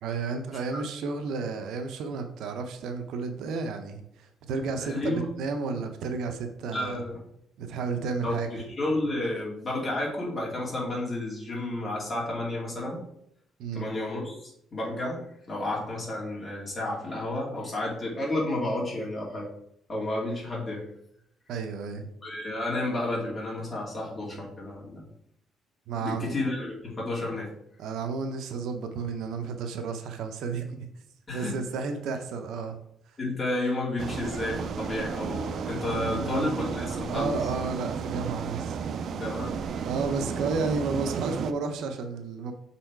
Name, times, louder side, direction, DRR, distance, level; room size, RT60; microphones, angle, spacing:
voice 1, 0.0-7.0 7.6-8.5 13.6-13.9 21.5-22.1 25.9-26.3 27.8-30.9 31.3-32.8 35.9-36.5 37.1-38.8 39.8-42.5, right 4 dB, 75° right, 6 dB, 0.8 m, -32 dB
voice 2, 4.8-5.3 6.7-7.2 8.2-13.0 13.7-19.5 19.9-20.9 22.2-25.1 26.0-27.5 31.3-31.6 33.2-37.3 39.1-39.6, left 1 dB, 25° left, -4 dB, 2.6 m, -31 dB
sound 1, 34.0-41.5, right 6 dB, 55° right, 0.4 m, -33 dB
6.3 x 4.2 x 4.6 m, 0.74 s
cardioid pair, 135°, 0 cm